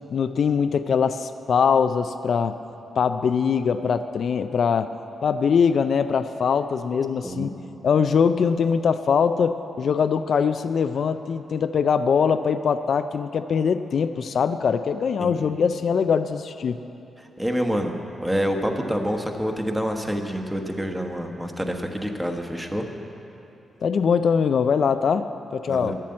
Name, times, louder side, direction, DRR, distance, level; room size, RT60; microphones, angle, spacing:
voice 1, 0.1-2.6 3.0-4.9 5.2-7.5 7.8-16.8 23.8-26.0, left 6 dB, 65° left, 10 dB, 0.4 m, -22 dB
voice 2, 15.2-15.5 17.2-17.9 18.2-22.8 25.7-26.0, equal, 5° right, 3 dB, 1.1 m, -27 dB
11.0 x 7.5 x 8.7 m, 2.9 s
cardioid pair, 95°, 0 cm